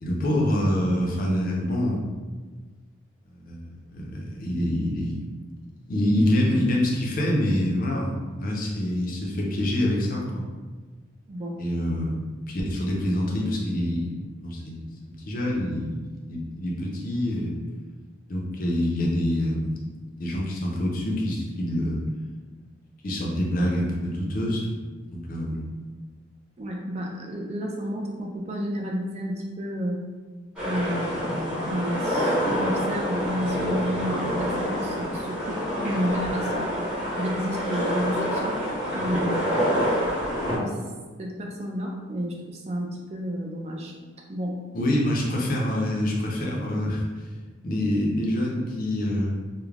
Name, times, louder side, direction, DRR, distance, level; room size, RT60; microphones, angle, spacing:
voice 1, 0.0-2.0 3.3-5.1 5.9-10.4 11.6-12.1 12.5-14.1 14.4-17.6 18.3-19.9 20.2-22.0 23.0-24.8 25.1-25.7 44.7-47.1 47.6-49.4, left 1 dB, 45° left, -2 dB, 0.5 m, -26 dB
voice 2, 11.3-11.6 26.6-30.0 30.6-36.7 37.2-38.5 38.9-39.6 40.5-40.8 41.2-43.9 44.3-44.6, equal, 30° right, 0 dB, 0.3 m, -31 dB
sound 1, 30.6-40.6, equal, 5° right, 0.8 m, -27 dB
2.4 x 2.0 x 3.2 m, 1.4 s
head